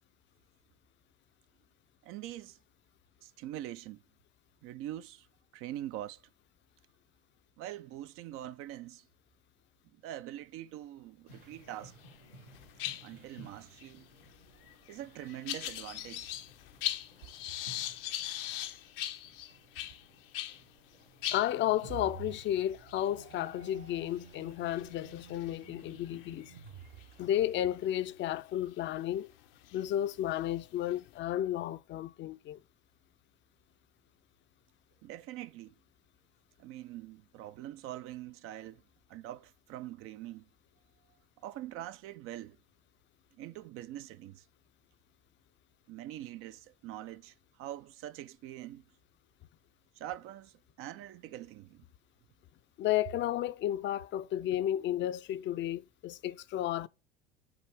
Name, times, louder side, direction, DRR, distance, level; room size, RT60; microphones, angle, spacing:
voice 1, 2.0-2.6 3.2-4.0 4.6-5.3 5.5-6.2 7.6-9.1 10.0-12.0 13.0-14.1 14.9-16.3 35.0-35.7 36.6-38.8 39.1-40.5 41.4-42.6 43.4-44.4 45.9-48.8 50.0-51.8, right 13 dB, 50° right, 0.5 m, -44 dB
sound 1, 11.3-27.3, right 2 dB, 85° right, 1.9 m, -58 dB
sound 2, 11.7-12.2 12.4-20.6 20.9-21.0 21.2-27.0 27.6-27.9 28.7-28.8 29.4-31.2, left 13 dB, 70° left, 0.8 m, -41 dB
voice 2, 21.3-26.5 27.2-29.3 29.7-32.6 52.8-56.9, left 12 dB, 40° left, 0.5 m, -32 dB
sound 3, 21.9-27.9, right 9 dB, 70° right, 1.5 m, -51 dB
7.8 x 2.6 x 4.6 m
hypercardioid pair, 70°, 29 cm